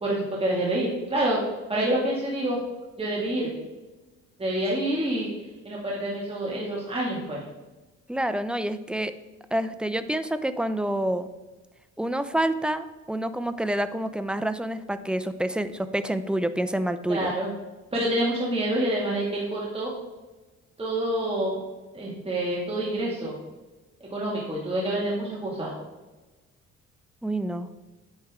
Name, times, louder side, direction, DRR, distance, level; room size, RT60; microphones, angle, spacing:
voice 1, 0.0-1.4 1.7-2.6 3.0-3.5 4.4-5.3 5.6-7.5 17.1-17.5 17.9-19.9 20.8-21.6 21.9-23.3 24.1-25.7, right 1 dB, 20° right, -4 dB, 2.3 m, -27 dB
voice 2, 8.1-9.1 9.5-11.3 12.0-17.3 27.2-27.7, right 1 dB, 5° right, 11 dB, 0.6 m, -28 dB
9.4 x 8.9 x 3.7 m, 1.2 s
cardioid pair, 90°, 30 cm